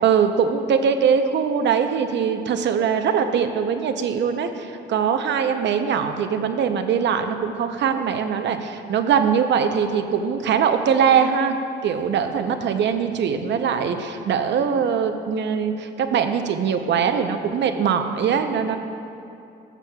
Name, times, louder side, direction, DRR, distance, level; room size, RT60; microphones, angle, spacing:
voice 1, 0.0-11.6 11.8-18.8, right 7 dB, 65° right, 7 dB, 0.6 m, -22 dB
14.0 x 7.0 x 2.3 m, 2.7 s
cardioid pair, 90°, 20 cm